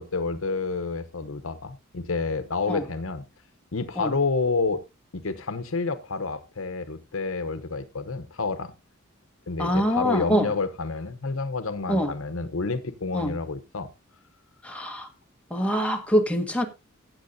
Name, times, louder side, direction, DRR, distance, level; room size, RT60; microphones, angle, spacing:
voice 1, 0.0-3.2 3.7-4.8 5.1-8.7 9.5-13.9, left 4 dB, 70° left, 0.9 m, -29 dB
voice 2, 9.6-10.5 11.9-12.1 13.1-13.4 14.6-15.1 15.5-16.6, equal, 5° left, 1.6 m, -24 dB
15.0 x 8.7 x 2.7 m
head